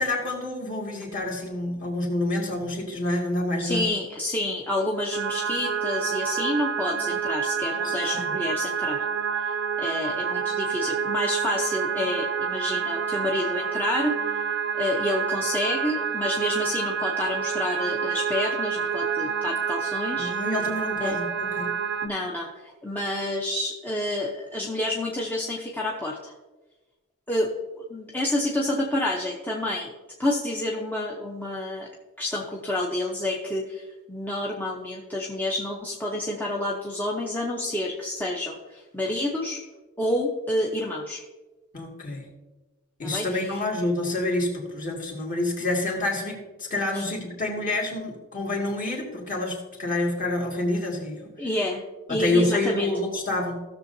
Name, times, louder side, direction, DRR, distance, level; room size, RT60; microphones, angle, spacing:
voice 1, 0.0-3.9 7.8-8.3 20.2-21.7 41.7-42.3 43.0-51.3 52.1-53.6, left 2 dB, 40° left, -2 dB, 2.1 m, -28 dB
voice 2, 3.6-9.1 9.3-14.4 14.7-20.3 21.0-21.1 22.0-26.3 27.3-29.9 30.2-31.9 32.2-39.6 40.0-41.2 43.0-43.6 46.9-47.0 51.4-51.8 52.1-52.9, left 1 dB, 10° left, -3 dB, 0.7 m, -29 dB
sound 1, 5.1-22.1, right 6 dB, 55° right, 0.5 m, -28 dB
16.0 x 6.7 x 2.7 m, 1.2 s
head